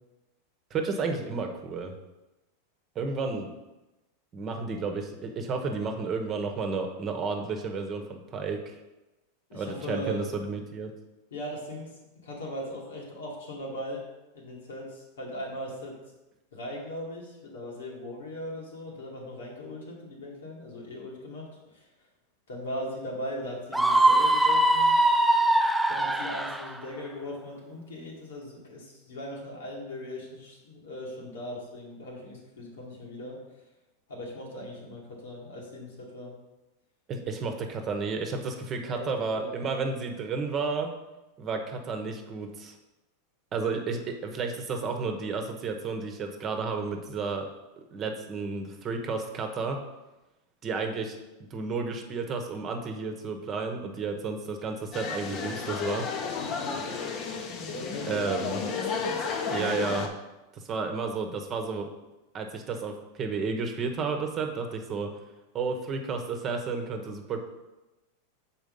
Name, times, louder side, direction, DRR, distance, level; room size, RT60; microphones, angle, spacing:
voice 1, 0.7-1.9 2.9-3.5 4.3-8.7 9.5-10.9 37.1-40.9 41.4-42.7 43.5-47.5 47.9-49.8 50.6-56.1 58.1-58.6 59.5-60.1 60.5-61.9 62.3-65.1 65.5-67.4, right 4 dB, 35° right, 4 dB, 1.0 m, -32 dB
voice 2, 9.5-10.3 11.3-11.9 12.2-14.0 14.3-16.0 16.5-21.8 22.5-25.0 25.9-33.4 34.1-36.3 38.9-39.5 56.2-57.1 57.6-58.8, left 1 dB, 90° left, -3 dB, 2.3 m, -39 dB
Screaming, 23.7-26.7, right 1 dB, 5° right, 0.4 m, -22 dB
sound 1, 54.9-60.1, left 5 dB, 40° left, 0.9 m, -32 dB
6.3 x 4.4 x 5.4 m, 1.0 s
hypercardioid pair, 115°, 0 cm